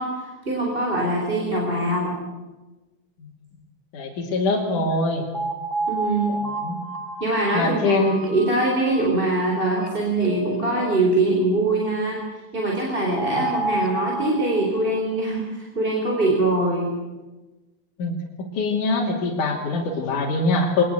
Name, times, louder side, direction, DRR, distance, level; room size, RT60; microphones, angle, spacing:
voice 1, 0.0-2.2 5.9-6.4 7.2-12.2 12.5-16.9, right 2 dB, 15° right, -1 dB, 4.0 m, -23 dB
voice 2, 3.9-5.2 6.6-6.8 7.5-8.2 13.4-13.5 18.0-18.2 18.6-20.8, left 3 dB, 70° left, -1 dB, 4.3 m, -23 dB
sound 1, 4.9-5.0 5.3-9.1 9.4-9.5 9.8-9.9 10.2-10.9 13.2-15.0, right 2 dB, 5° left, 3.4 m, -30 dB
24.0 x 20.0 x 8.2 m, 1.1 s
omnidirectional pair, 3.8 m